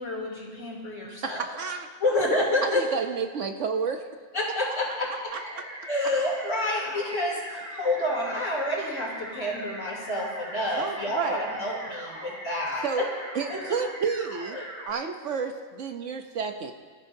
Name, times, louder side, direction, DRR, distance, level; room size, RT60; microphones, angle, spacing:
voice 1, 0.0-1.4 2.0-2.8 4.3-5.3 5.9-13.1 13.5-13.8 14.5-14.7, left 1 dB, 55° left, -3 dB, 3.3 m, -29 dB
voice 2, 1.2-1.9 2.6-4.1 5.3-5.7 10.8-11.4 12.8-13.1 13.3-14.6 14.9-16.7, right 5 dB, 65° right, 6 dB, 1.0 m, -30 dB
sound 1, 5.3-14.9, right 1 dB, 30° right, 3.6 m, -40 dB
23.0 x 13.5 x 2.7 m, 1.5 s
omnidirectional pair, 1.5 m